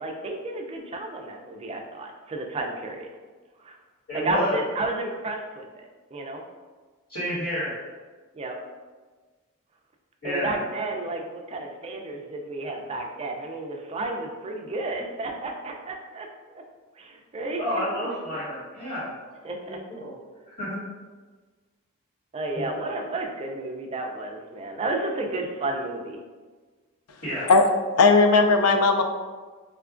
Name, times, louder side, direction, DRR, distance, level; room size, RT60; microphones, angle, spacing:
voice 1, 0.0-3.1 3.6-3.8 4.1-5.7 6.1-6.4 8.3-8.6 10.2-16.6 17.0-17.8 19.4-19.8 22.3-26.2, right 2 dB, 25° right, 2 dB, 0.3 m, -32 dB
voice 2, 4.1-4.6 7.1-7.7 10.2-10.6 17.6-19.1 19.6-20.1 20.6-20.8 22.5-22.6 27.2-27.5, equal, 60° left, -12 dB, 1.5 m, -30 dB
voice 3, 28.0-29.0, left 3 dB, 80° left, 5 dB, 0.4 m, -17 dB
4.3 x 2.3 x 2.4 m, 1.4 s
head